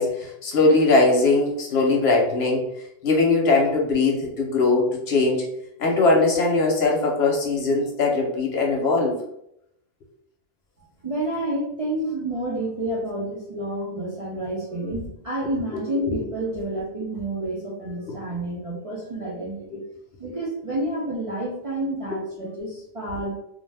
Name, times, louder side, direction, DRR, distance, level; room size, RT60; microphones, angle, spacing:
voice 1, 0.0-2.6 3.0-5.4 5.8-9.1 15.9-16.0 18.1-18.2 19.7-19.8 22.1-22.2, left 3 dB, 60° left, -1 dB, 0.9 m, -20 dB
voice 2, 11.0-19.8 20.2-23.3, right 1 dB, 50° right, -4 dB, 0.4 m, -29 dB
2.5 x 2.1 x 3.3 m, 0.78 s
omnidirectional pair, 1.3 m